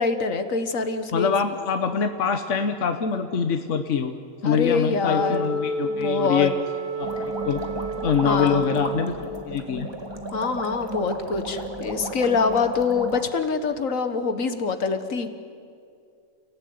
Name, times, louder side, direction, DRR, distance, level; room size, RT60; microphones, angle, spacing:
voice 1, 0.0-1.3 4.4-5.5 5.9-6.5 8.2-8.7 10.3-15.3, left 4 dB, 85° left, 9 dB, 1.9 m, -25 dB
voice 2, 1.1-4.1 4.4-6.5 7.0-7.6 8.0-9.2 9.5-9.9, left 6 dB, 70° left, 7 dB, 1.4 m, -24 dB
Wind instrument woodwind instrument, 5.1-9.5, right 2 dB, 30° left, 2.4 m, -30 dB
sound 1, 7.0-13.2, right 1 dB, 20° right, 2.0 m, -34 dB
29.0 x 17.5 x 9.6 m, 2.4 s
omnidirectional pair, 1.3 m